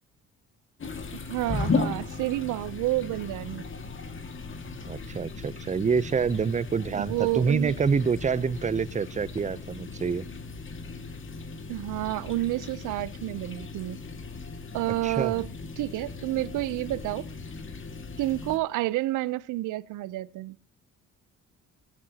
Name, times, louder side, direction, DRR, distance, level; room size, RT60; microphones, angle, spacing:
sound 1, 0.8-18.6, left 4 dB, 40° left, 2.0 m, -36 dB
voice 1, 1.1-3.6 6.9-7.7 11.7-14.0 14.7-15.5 15.8-17.2 18.2-20.6, right 17 dB, 90° right, 0.7 m, -29 dB
voice 2, 4.9-10.2 15.0-15.4, right 5 dB, 25° right, 0.6 m, -27 dB
17.0 x 13.0 x 2.8 m
cardioid pair, 90°, 30 cm